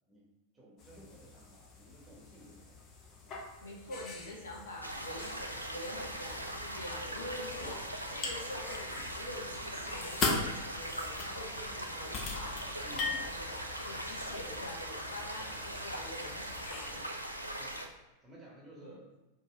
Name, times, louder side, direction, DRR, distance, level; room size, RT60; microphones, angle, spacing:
voice 1, 0.5-2.8 3.2-3.4 7.3-7.7 12.8-13.3 17.6-17.8 18.2-19.1, equal, 15° right, -4 dB, 1.2 m, -54 dB
sound 1, 0.8-17.0, left 3 dB, 35° left, 0.7 m, -41 dB
voice 2, 3.6-17.1 18.8-19.0, left 1 dB, 65° left, -1 dB, 0.8 m, -46 dB
sound 2, 4.8-17.9, right 1 dB, 90° right, 0.4 m, -41 dB
4.6 x 2.8 x 3.5 m, 1.1 s
figure-of-eight pair, 90°, 0 cm